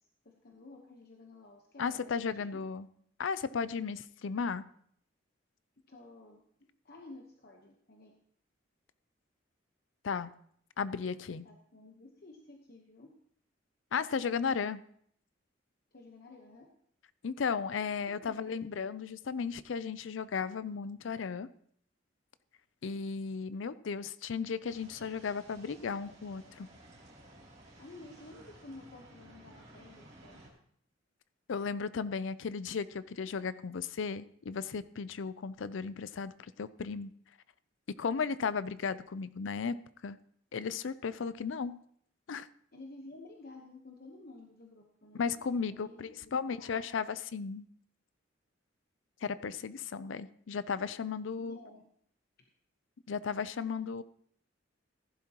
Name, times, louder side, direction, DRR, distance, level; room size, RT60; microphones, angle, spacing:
voice 1, 0.2-2.1 2.4-2.7 5.9-6.4 6.8-8.1 11.4-13.1 15.9-16.7 18.2-18.5 27.8-30.4 42.7-46.9 51.4-51.8, left 2 dB, 55° left, 2 dB, 1.1 m, -52 dB
voice 2, 1.8-2.9 3.2-4.6 10.0-10.3 10.8-11.5 13.9-14.8 17.2-21.5 22.8-26.7 31.5-37.1 38.0-39.8 40.0-40.2 40.5-41.8 42.3-42.5 45.1-47.7 49.2-51.6 53.1-54.0, left 5 dB, 80° left, 15 dB, 0.5 m, -35 dB
sound 1, 24.7-30.5, right 1 dB, 35° right, 3.1 m, -56 dB
15.5 x 11.0 x 3.0 m, 0.65 s
head